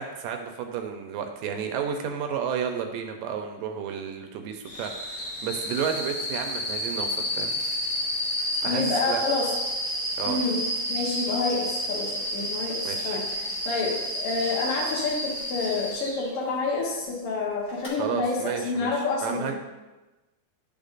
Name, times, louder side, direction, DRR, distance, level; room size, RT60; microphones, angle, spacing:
voice 1, 0.0-7.8 8.4-9.2 10.2-10.4 12.8-13.2 18.0-19.5, right 7 dB, 80° right, 5 dB, 2.2 m, -32 dB
sound 1, 4.7-16.2 17.7-17.9, equal, 30° left, 1.4 m, -30 dB
voice 2, 8.6-9.5 10.3-10.6 10.9-19.5, left 3 dB, 65° left, -4 dB, 1.5 m, -28 dB
11.5 x 5.2 x 2.5 m, 1.1 s
omnidirectional pair, 4.1 m